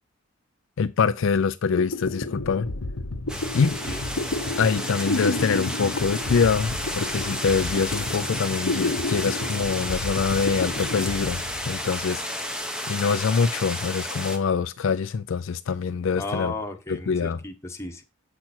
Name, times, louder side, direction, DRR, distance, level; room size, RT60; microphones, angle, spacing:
voice 1, 0.8-2.7 3.5-3.8 4.6-12.4 12.9-16.5 16.9-17.4, left 5 dB, 60° left, 0.4 m, -24 dB
sound 1, 1.8-12.2, left 2 dB, 80° left, 0.9 m, -31 dB
sound 2, 3.3-14.4, left 1 dB, 5° right, 0.8 m, -32 dB
voice 2, 16.1-18.0, left 2 dB, 10° left, 1.1 m, -34 dB
7.6 x 5.9 x 4.3 m
head